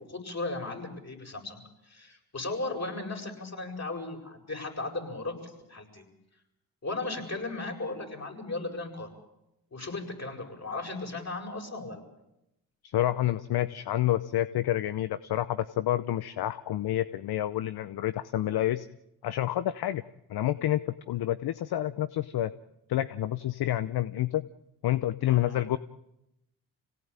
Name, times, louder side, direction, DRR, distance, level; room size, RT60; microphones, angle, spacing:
voice 1, 0.1-6.0 6.8-9.1 9.7-12.0 25.2-25.7, left 2 dB, 40° left, 2 dB, 8.0 m, -36 dB
voice 2, 12.8-18.9 19.2-20.0 20.3-22.5 22.9-24.4 24.8-25.8, left 13 dB, 65° left, 14 dB, 0.9 m, -28 dB
26.5 x 18.0 x 8.9 m, 0.88 s
hypercardioid pair, 40°, 41 cm